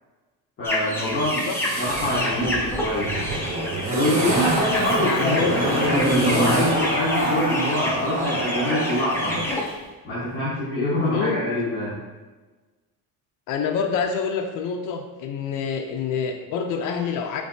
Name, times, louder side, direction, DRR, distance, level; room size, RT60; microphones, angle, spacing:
voice 1, 0.6-1.5 1.8-3.1 3.9-9.5 10.0-12.0, equal, 30° left, -11 dB, 1.3 m, -25 dB
sound 1, 0.6-9.7, left 1 dB, 5° left, 0.4 m, -29 dB
sound 2, 0.9-2.2 3.6-4.7 5.8-6.9, right 2 dB, 60° right, 1.1 m, -34 dB
Zipper (clothing), 1.9-9.5 9.8-9.9, right 1 dB, 25° right, 0.7 m, -26 dB
voice 2, 5.0-6.0 11.1-11.4 13.5-17.4, left 6 dB, 60° left, 3 dB, 0.5 m, -27 dB
5.2 x 3.2 x 2.7 m, 1.2 s
cardioid pair, 180°, 35 cm